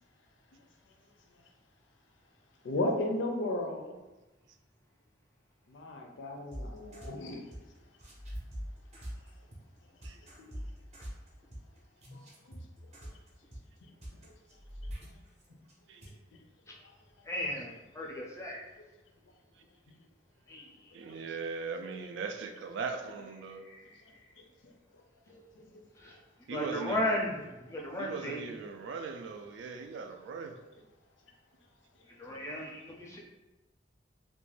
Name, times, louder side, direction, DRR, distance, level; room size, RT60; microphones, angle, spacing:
voice 1, 2.6-3.9 5.7-7.4 10.4-10.5 12.5-12.6 25.3-25.4, left 1 dB, 80° left, 3 dB, 0.4 m, -34 dB
sound 1, 6.5-7.7 8.0-15.7 16.0-16.1, equal, 35° right, 0.6 m, -43 dB
voice 2, 17.3-18.6 20.5-20.9 23.7-23.8 26.0-26.2 26.5-28.5 32.2-33.2, left 1 dB, 15° left, -2 dB, 0.4 m, -35 dB
voice 3, 20.9-23.6 26.5-27.2 28.0-30.5, right 5 dB, 75° right, 5 dB, 0.3 m, -39 dB
2.5 x 2.2 x 3.2 m, 1.1 s
head